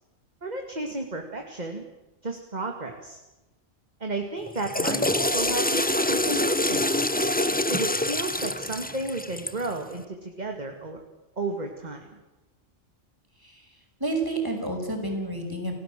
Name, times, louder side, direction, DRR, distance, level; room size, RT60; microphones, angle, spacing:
voice 1, 0.4-1.8 2.2-3.2 4.0-6.9 7.7-11.0 11.4-12.1, right 2 dB, 35° right, 3 dB, 2.5 m, -33 dB
Water / Toilet flush, 4.5-9.7, left 1 dB, 10° left, 1.0 m, -25 dB
voice 2, 14.0-15.8, right 2 dB, 15° right, 3 dB, 5.9 m, -30 dB
29.5 x 18.0 x 7.7 m, 1.1 s
omnidirectional pair, 1.3 m